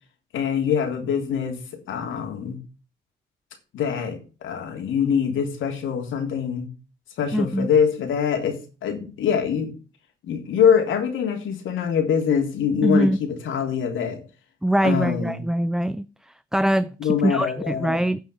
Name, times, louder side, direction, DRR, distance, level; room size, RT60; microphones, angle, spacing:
voice 1, 0.3-1.6 1.9-2.6 3.7-6.7 7.2-8.6 8.8-9.7 10.2-14.2 14.8-15.4 17.0-18.0, left 7 dB, 75° left, 3.3 m, -24 dB
voice 2, 7.3-7.7 12.8-13.2 14.6-16.0 16.5-18.2, right 1 dB, 5° right, 0.5 m, -22 dB
9.7 x 5.7 x 8.2 m
cardioid pair, 90°, 20 cm